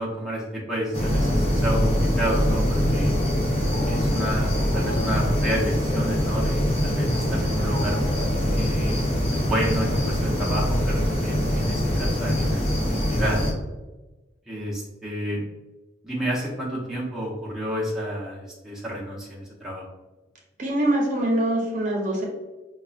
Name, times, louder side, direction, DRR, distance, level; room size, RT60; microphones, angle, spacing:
voice 1, 0.0-3.1 3.9-8.0 8.5-9.1 9.3-13.6 14.5-15.4 16.0-19.9, equal, ahead, -7 dB, 0.6 m, -30 dB
sound 1, 0.9-13.5, equal, 30° left, 0.7 m, -23 dB
voice 2, 20.6-22.3, right 1 dB, 45° right, -1 dB, 0.7 m, -23 dB
5.1 x 2.3 x 2.4 m, 1.1 s
head